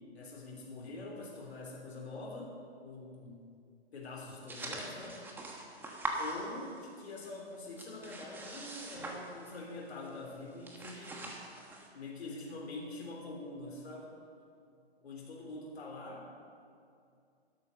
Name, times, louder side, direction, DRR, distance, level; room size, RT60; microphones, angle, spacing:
voice 1, 0.1-2.5 2.8-3.4 3.9-5.2 6.2-11.3 11.9-14.1 15.0-16.3, left 2 dB, 70° left, -2 dB, 3.5 m, -45 dB
sound 1, 4.5-7.0 7.2-9.7 10.1-10.2 10.5-11.9, right 2 dB, 5° right, 1.2 m, -42 dB
12.0 x 11.0 x 6.5 m, 2.4 s
hypercardioid pair, 140°, 33 cm